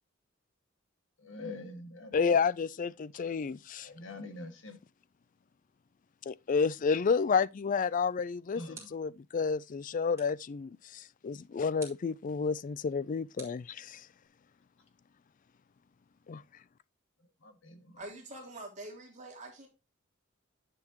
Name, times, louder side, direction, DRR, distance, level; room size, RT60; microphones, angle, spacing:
voice 1, 1.2-2.2 3.8-4.8 8.6-8.9 17.4-18.0, left 2 dB, 75° left, 2.0 m, -44 dB
voice 2, 2.1-3.9 6.3-14.1 16.3-16.4, left 5 dB, 40° left, 0.4 m, -30 dB
sound 1, 8.7-9.2 10.1-10.5 11.8-12.2 13.4-14.3, right 4 dB, 15° right, 3.3 m, -52 dB
voice 3, 18.0-19.7, right 2 dB, 40° right, 2.9 m, -45 dB
10.5 x 6.9 x 2.9 m
head